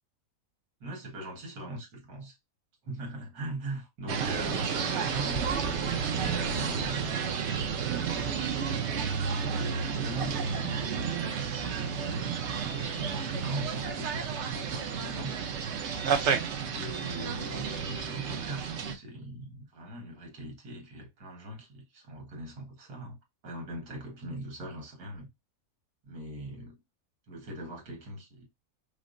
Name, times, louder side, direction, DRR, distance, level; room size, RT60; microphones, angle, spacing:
voice 1, 0.8-2.4 2.8-7.1 7.9-8.9 9.5-15.3 16.7-23.2 23.4-25.3 26.0-26.8 27.3-28.5, right 1 dB, 80° right, 1.8 m, -40 dB
sound 1, 4.1-18.9, right 6 dB, 60° right, 0.8 m, -31 dB
5.1 x 2.0 x 2.5 m
omnidirectional pair, 1.6 m